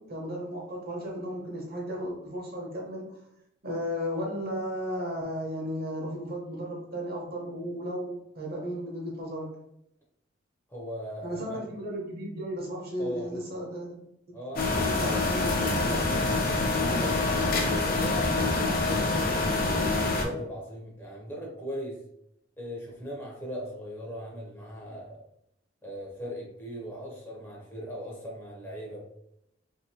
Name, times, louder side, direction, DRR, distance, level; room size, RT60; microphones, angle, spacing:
voice 1, 0.0-3.0 3.6-9.5 11.2-14.1 14.8-15.5, equal, 55° right, -1 dB, 0.9 m, -34 dB
voice 2, 10.7-11.6 13.0-13.3 14.3-22.0 22.6-25.2 25.8-29.1, equal, 15° left, -3 dB, 0.7 m, -39 dB
sound 1, 14.6-20.3, left 2 dB, 50° left, 0.6 m, -26 dB
2.8 x 2.7 x 2.8 m, 0.78 s
head